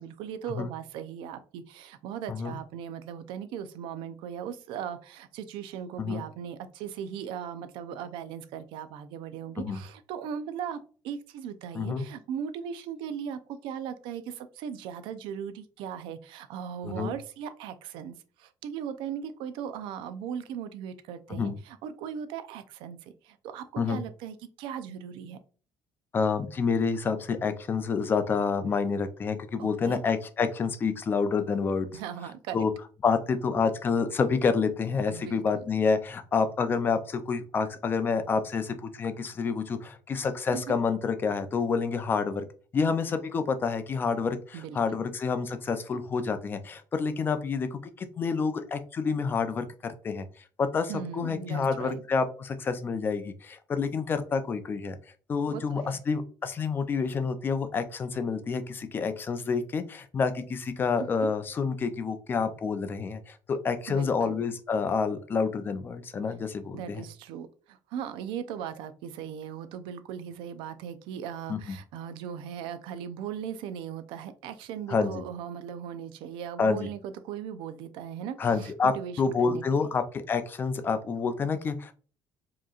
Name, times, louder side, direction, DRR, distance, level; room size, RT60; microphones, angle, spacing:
voice 1, 0.0-25.4 29.6-30.0 31.9-32.6 35.1-35.6 40.5-40.8 44.5-44.8 50.9-52.0 55.5-56.0 61.0-61.3 63.9-64.3 66.7-79.9, right 8 dB, 80° right, 11 dB, 0.5 m, -38 dB
voice 2, 11.7-12.1 16.8-17.1 21.3-21.6 23.8-24.0 26.1-31.9 32.5-32.7 33.0-42.4 42.7-50.3 50.6-55.0 55.3-67.0 71.5-71.8 74.9-75.2 76.6-76.9 78.4-81.9, left 5 dB, 25° left, 9 dB, 0.4 m, -28 dB
4.9 x 2.9 x 2.4 m, 0.40 s
cardioid pair, 160°, 8 cm